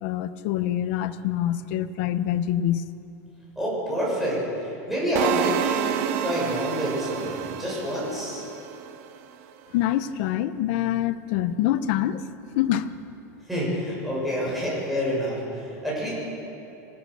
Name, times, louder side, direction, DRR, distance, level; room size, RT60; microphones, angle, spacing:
voice 1, 0.0-2.8 9.7-12.3 12.6-13.0, left 12 dB, 50° left, 11 dB, 0.8 m, -25 dB
voice 2, 3.5-8.5 13.5-16.1, equal, ahead, -7 dB, 6.8 m, -28 dB
sound 1, 5.2-9.2, right 10 dB, 55° right, 1.3 m, -29 dB
26.0 x 16.0 x 6.8 m, 2.8 s
supercardioid pair, 175°, 9 cm